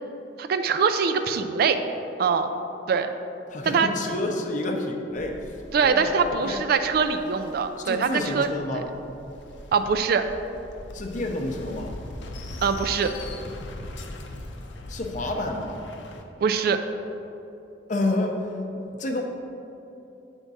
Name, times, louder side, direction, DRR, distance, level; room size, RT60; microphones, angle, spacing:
voice 1, 0.4-1.8 2.2-2.5 2.9-3.1 3.7-3.9 5.7-8.5 8.7-8.8 9.7-10.2 12.6-13.1 16.4-16.8, right 5 dB, 55° right, 9 dB, 0.3 m, -23 dB
voice 2, 3.5-6.6 7.9-8.9 10.9-12.0 14.9-15.8 17.9-19.2, left 2 dB, 45° left, 3 dB, 0.6 m, -29 dB
sound 1, 5.1-16.2, left 1 dB, 90° left, 0.6 m, -41 dB
8.2 x 3.5 x 4.0 m, 2.9 s
head